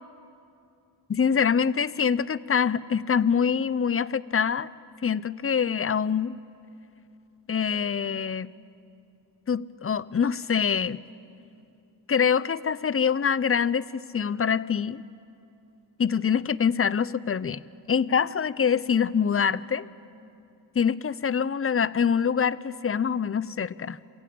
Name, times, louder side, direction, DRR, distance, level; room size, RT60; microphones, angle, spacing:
voice 1, 1.1-4.7 5.0-6.4 7.5-8.5 9.5-11.0 12.1-15.0 16.0-17.6 17.9-19.9 20.8-24.0, left 7 dB, 35° left, 19 dB, 0.5 m, -25 dB
27.5 x 15.5 x 8.6 m, 2.6 s
wide cardioid pair, 90°, 43 cm